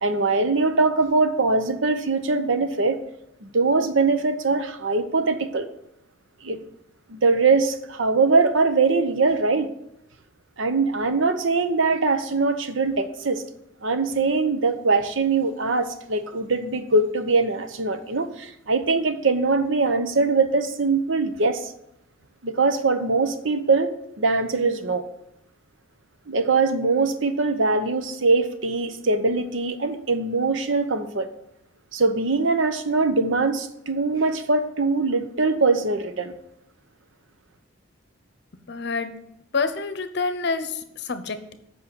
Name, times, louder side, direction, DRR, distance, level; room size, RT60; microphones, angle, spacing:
voice 1, 0.0-3.0 3.4-5.7 6.4-6.6 7.1-9.7 10.6-13.4 13.8-21.7 22.4-25.1 26.3-31.3 31.9-36.3, right 3 dB, 65° right, 9 dB, 0.9 m, -22 dB
voice 2, 38.7-39.1 39.5-41.5, left 4 dB, 55° left, 10 dB, 0.8 m, -27 dB
8.3 x 5.5 x 7.0 m, 0.80 s
head